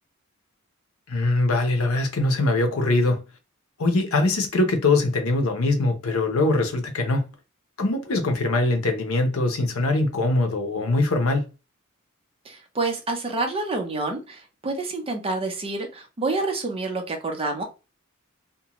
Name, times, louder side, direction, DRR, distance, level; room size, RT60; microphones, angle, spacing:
voice 1, 1.1-3.2 3.8-7.2 7.8-11.4, left 2 dB, 85° left, 0.7 m, -22 dB
voice 2, 12.4-17.6, right 3 dB, 30° right, 0.6 m, -28 dB
2.6 x 2.2 x 2.9 m
head